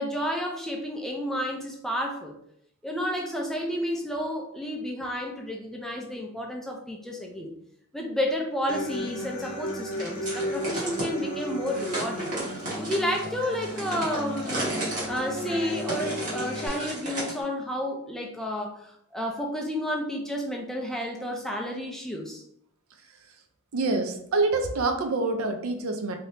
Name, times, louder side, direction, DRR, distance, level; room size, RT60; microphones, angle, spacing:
voice 1, 0.0-2.3 2.8-7.5 7.9-12.3 12.8-14.7 15.1-22.4, equal, ahead, 0 dB, 0.3 m, -31 dB
Human voice / Acoustic guitar, 8.7-16.7, left 1 dB, 40° left, 0.6 m, -34 dB
sound 1, 10.0-11.1 11.7-17.4, right 2 dB, 35° right, 1.2 m, -34 dB
voice 2, 23.7-26.2, right 3 dB, 70° right, 5 dB, 0.5 m, -26 dB
3.3 x 2.7 x 2.7 m, 0.71 s
head